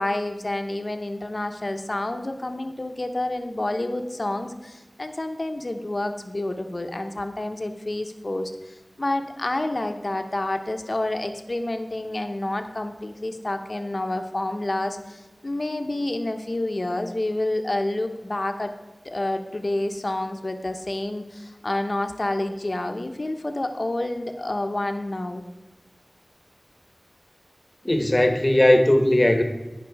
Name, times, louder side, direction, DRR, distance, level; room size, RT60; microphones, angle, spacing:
voice 1, 0.0-18.7 19.0-25.4, left 1 dB, 50° left, 6 dB, 0.9 m, -29 dB
voice 2, 27.8-29.4, left 1 dB, 30° left, 6 dB, 1.3 m, -18 dB
16.5 x 6.0 x 4.7 m, 1.2 s
wide cardioid pair, 55°, 0 cm